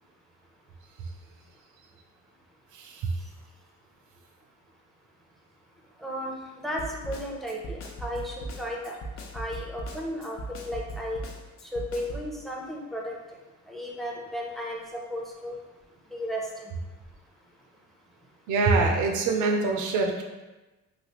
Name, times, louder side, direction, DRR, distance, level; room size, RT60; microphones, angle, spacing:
voice 1, 2.7-3.2 18.5-20.2, right 3 dB, 85° right, 3 dB, 0.5 m, -24 dB
voice 2, 6.0-9.0 9.3-10.4 10.6-11.2 11.7-13.1 13.7-15.6 16.1-16.7, equal, ahead, -2 dB, 0.6 m, -34 dB
Snare drum, 6.8-12.3, right 1 dB, 50° left, 0.5 m, -38 dB
3.2 x 2.4 x 2.9 m, 1.1 s
cardioid pair, 90°, 30 cm